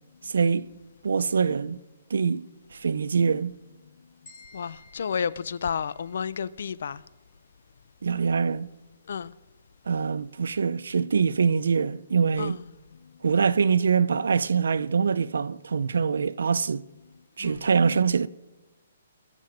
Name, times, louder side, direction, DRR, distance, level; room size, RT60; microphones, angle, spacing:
voice 1, 0.2-0.7 1.0-1.8 2.1-2.5 2.7-3.5 8.0-8.7 9.9-12.6 13.2-16.9 17.4-18.3, right 5 dB, 85° right, 0.5 m, -24 dB
sound 1, 4.3-6.4, left 2 dB, 30° left, 3.7 m, -54 dB
voice 2, 4.5-7.0 9.1-9.3 12.4-12.7 17.4-17.7, left 6 dB, 65° left, 0.5 m, -31 dB
20.5 x 7.5 x 5.0 m
hypercardioid pair, 165°, 0 cm